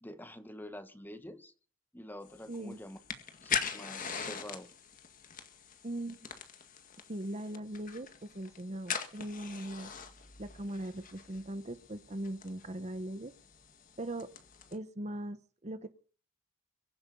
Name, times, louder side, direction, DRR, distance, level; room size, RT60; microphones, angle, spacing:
voice 1, 0.0-1.5 1.9-3.0 3.4-4.7, left 1 dB, 10° left, 10 dB, 1.2 m, -47 dB
sound 1, 2.3-14.7, left 7 dB, 40° left, 1.9 m, -42 dB
voice 2, 2.5-2.8 5.8-6.3 7.1-9.9 10.4-13.3 14.0-14.3 14.7-15.9, right 1 dB, 30° right, 12 dB, 1.0 m, -40 dB
23.0 x 8.7 x 5.4 m, 0.40 s
head